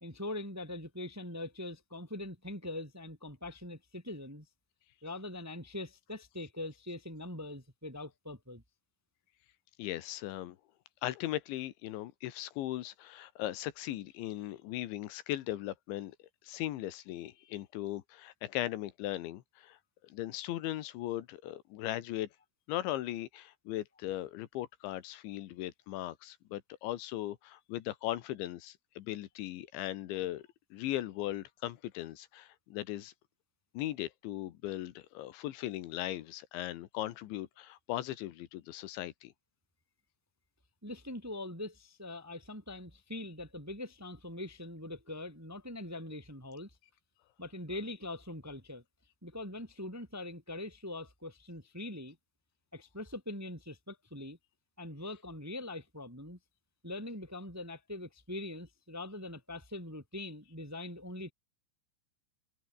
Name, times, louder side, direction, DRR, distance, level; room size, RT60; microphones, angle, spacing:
voice 1, 0.0-4.5 5.0-8.6 40.8-46.7 47.4-48.8 49.2-52.2 52.7-54.4 54.8-56.4 56.8-61.3, left 1 dB, 5° right, 1.9 m, -42 dB
voice 2, 9.8-10.6 11.0-19.8 20.0-22.3 22.7-33.1 33.8-39.3, left 14 dB, 80° left, 3.5 m, -38 dB
omnidirectional pair, 5.4 m